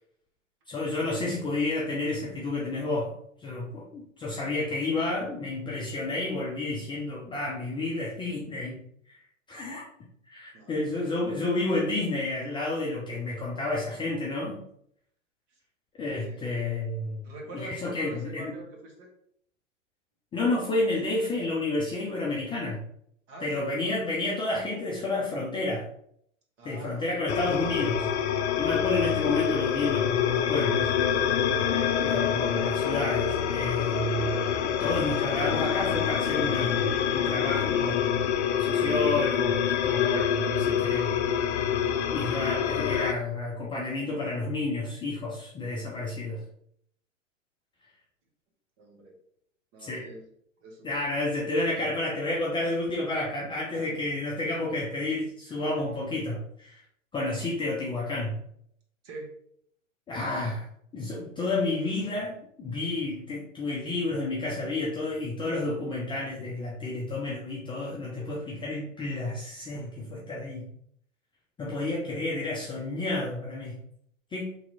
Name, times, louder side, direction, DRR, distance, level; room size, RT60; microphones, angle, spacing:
voice 1, 0.7-3.1 3.4-8.8 9.1-9.2 9.5-9.9 10.3-14.6 16.0-17.3 17.5-18.5 20.3-22.8 23.4-25.9 26.6-28.1 28.6-30.9 32.0-38.3 38.6-41.2 42.1-46.5 49.8-50.0 50.8-56.8 57.1-58.4 60.1-60.7 60.9-70.7 71.6-73.7 74.3-74.5, left 2 dB, 15° left, -5 dB, 0.6 m, -30 dB
voice 2, 17.2-19.1 23.3-24.0 26.6-27.2 31.5-32.0 33.7-33.8 48.8-49.1 49.7-50.2 50.6-50.9 53.7-53.9 55.5-55.8 59.0-59.4, right 2 dB, 35° right, -1 dB, 1.4 m, -45 dB
sound 1, 27.3-43.1, left 8 dB, 60° left, 0.5 m, -26 dB
3.1 x 2.8 x 4.0 m, 0.70 s
hypercardioid pair, 110°, 39 cm